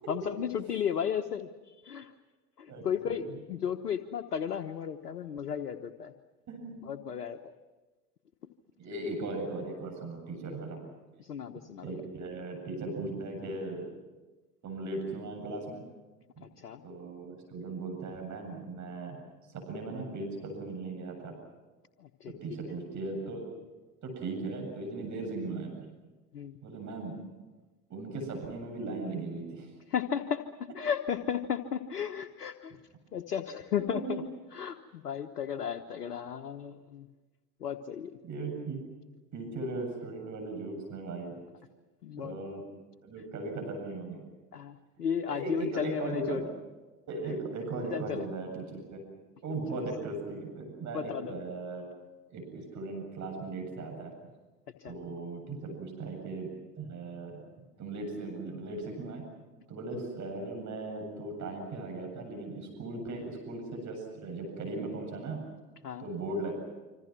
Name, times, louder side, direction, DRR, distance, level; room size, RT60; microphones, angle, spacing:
voice 1, 0.1-2.1 2.6-6.1 6.8-7.4 11.2-12.0 16.4-16.8 22.0-22.3 26.3-26.6 29.9-32.8 33.1-34.2 34.5-37.1 37.6-38.1 42.0-42.4 44.5-46.4 47.9-48.2 49.7-49.8 50.9-51.4 54.8-54.9 65.8-66.0, left 8 dB, 80° left, 5 dB, 1.2 m, -34 dB
voice 2, 2.7-3.2 6.5-6.7 8.8-10.8 11.8-13.8 14.6-15.8 16.4-16.5 16.8-19.2 19.5-21.3 22.4-23.4 24.0-25.7 26.6-27.2 27.9-29.7 33.8-34.2 38.2-38.8 39.3-41.4 42.2-42.6 43.0-44.2 45.3-46.4 47.1-49.1 49.4-51.9 52.3-54.1 54.9-56.5 56.8-57.4 57.8-59.2 59.7-65.4 66.0-66.5, right 2 dB, 40° right, 2 dB, 7.9 m, -38 dB
27.0 x 26.0 x 6.1 m, 1.2 s
figure-of-eight pair, 75°, 46 cm